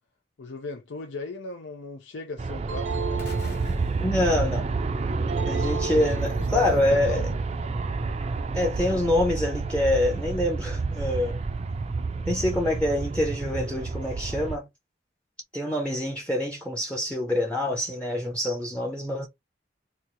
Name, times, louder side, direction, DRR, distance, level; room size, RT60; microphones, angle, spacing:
voice 1, 0.4-3.2 6.2-7.8, left 3 dB, 85° left, 0.6 m, -37 dB
Aircraft, 2.4-14.6, right 3 dB, 35° right, 0.4 m, -29 dB
sound 1, 2.7-4.2 5.3-6.9, right 5 dB, 85° right, 0.6 m, -35 dB
sound 2, 3.2-5.3, left 3 dB, 60° left, 1.0 m, -45 dB
voice 2, 4.0-4.7 5.5-7.3 8.5-11.4 12.3-14.7 15.5-19.3, left 1 dB, 5° left, 0.6 m, -26 dB
2.9 x 2.4 x 3.9 m
head